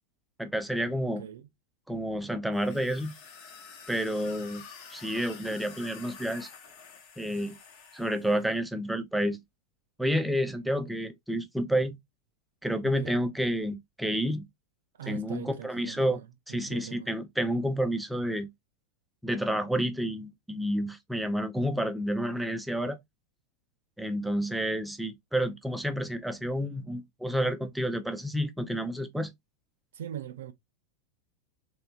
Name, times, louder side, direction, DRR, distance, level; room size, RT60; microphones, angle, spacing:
voice 1, 0.4-1.2 1.9-3.1 3.9-4.6 4.9-6.5 7.2-7.6 7.9-9.4 10.0-12.0 12.6-14.4 15.1-16.2 16.5-18.5 19.2-23.0 24.0-29.3, equal, 5° right, 0.6 m, -30 dB
voice 2, 1.0-1.5 12.8-13.3 15.0-17.1 29.9-30.5, right 10 dB, 60° right, 0.4 m, -42 dB
sound 1, 2.5-8.5, left 6 dB, 45° left, 0.9 m, -48 dB
3.3 x 3.3 x 2.8 m
figure-of-eight pair, 90°, 0 cm